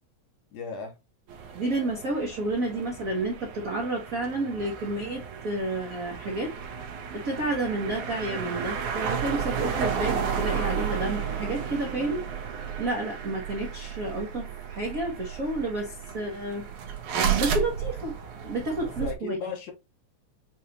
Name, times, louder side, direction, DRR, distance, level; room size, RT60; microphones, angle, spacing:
voice 1, 0.5-0.9 18.8-19.7, left 5 dB, 70° left, 2.2 m, -36 dB
sound 1, 1.3-19.1, right 7 dB, 75° right, 2.3 m, -33 dB
voice 2, 1.5-6.5 7.1-12.2 12.8-16.6 17.4-18.1 18.4-19.4, right 2 dB, 60° right, 0.8 m, -30 dB
7.2 x 2.6 x 2.8 m
omnidirectional pair, 3.4 m